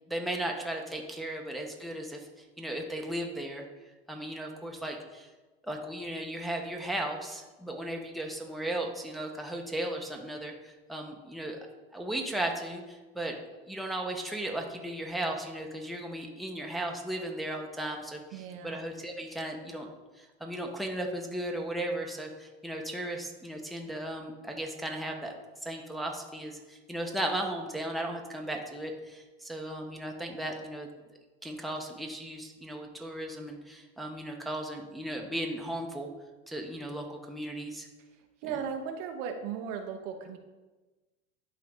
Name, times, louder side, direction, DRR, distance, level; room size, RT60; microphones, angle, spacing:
voice 1, 0.1-3.7 4.1-5.3 5.6-11.6 11.9-13.4 13.7-19.9 20.2-25.3 25.6-30.9 31.4-36.1 36.5-37.9 38.5-38.6, right 1 dB, ahead, 1 dB, 1.1 m, -36 dB
voice 2, 18.3-18.8 38.4-40.4, right 7 dB, 65° right, 5 dB, 0.9 m, -36 dB
11.0 x 3.8 x 3.7 m, 1.2 s
hypercardioid pair, 95°, 32 cm